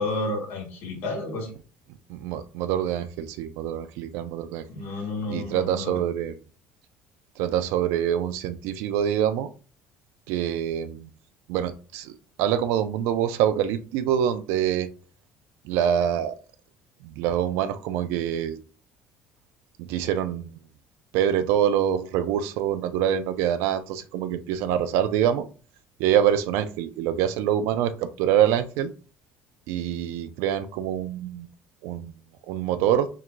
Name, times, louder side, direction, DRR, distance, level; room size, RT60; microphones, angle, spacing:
voice 1, 0.0-1.5 4.7-6.0, left 2 dB, 60° left, -1 dB, 1.8 m, -31 dB
voice 2, 2.1-4.7 5.3-6.4 7.4-9.5 10.3-11.1 11.5-14.9 15.6-16.4 17.0-18.6 19.8-20.5 21.1-25.4 26.0-28.9 29.7-31.5 31.8-32.1 32.5-33.1, right 10 dB, 85° right, 10 dB, 0.4 m, -25 dB
4.6 x 3.7 x 2.2 m, 0.37 s
cardioid pair, 165°, 4 cm